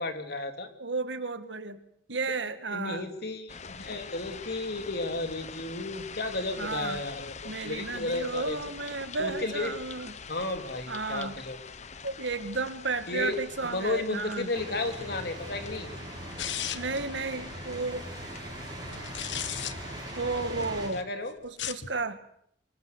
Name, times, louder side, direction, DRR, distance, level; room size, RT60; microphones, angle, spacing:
voice 1, 0.0-0.7 2.7-8.6 9.2-9.7 10.3-11.6 13.1-13.4 13.6-15.9 20.9-21.3, left 2 dB, 60° left, 6 dB, 3.0 m, -33 dB
voice 2, 0.8-1.8 2.1-3.1 6.6-7.0 7.4-10.1 10.9-11.3 12.0-14.5 16.7-18.1 18.9-19.0 20.2-21.0 21.4-22.2, right 3 dB, 80° right, 9 dB, 2.0 m, -33 dB
sound 1, 3.5-21.0, left 5 dB, 40° left, 1.0 m, -45 dB
sound 2, 14.5-20.9, right 1 dB, 25° right, 5.8 m, -41 dB
sound 3, 16.4-17.0 18.9-19.7 21.5-21.9, left 10 dB, 85° left, 1.4 m, -34 dB
24.5 x 19.5 x 8.2 m, 0.68 s
head